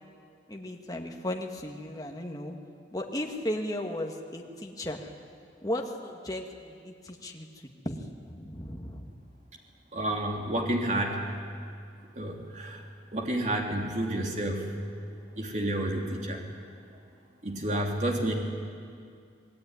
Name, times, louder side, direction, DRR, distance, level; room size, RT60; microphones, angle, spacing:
voice 1, 0.5-2.6 2.9-5.1 5.6-9.1, left 1 dB, 20° left, 2 dB, 1.9 m, -36 dB
voice 2, 9.9-11.2 12.1-12.8 13.1-14.7 15.4-16.4 17.4-18.3, right 1 dB, 40° right, 1 dB, 3.2 m, -30 dB
26.5 x 19.5 x 9.8 m, 2.3 s
head